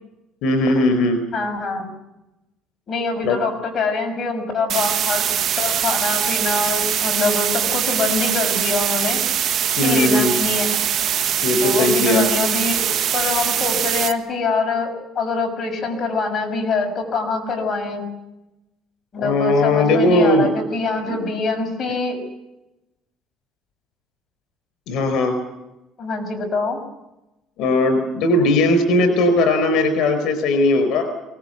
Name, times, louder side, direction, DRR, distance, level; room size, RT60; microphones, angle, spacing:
voice 1, 0.4-1.2 3.2-3.4 9.8-10.3 11.4-12.3 19.2-20.5 21.1-21.2 24.9-25.3 27.6-31.1, left 2 dB, 70° left, 8 dB, 4.8 m, -18 dB
voice 2, 1.3-1.9 2.9-5.2 5.6-9.2 9.8-10.8 11.6-18.1 19.1-22.2 26.0-26.8, left 3 dB, 35° left, 3 dB, 6.7 m, -24 dB
sound 1, 4.7-14.1, right 9 dB, 50° right, 1.4 m, -22 dB
24.5 x 19.5 x 8.1 m, 0.96 s
cardioid pair, 140°, 0 cm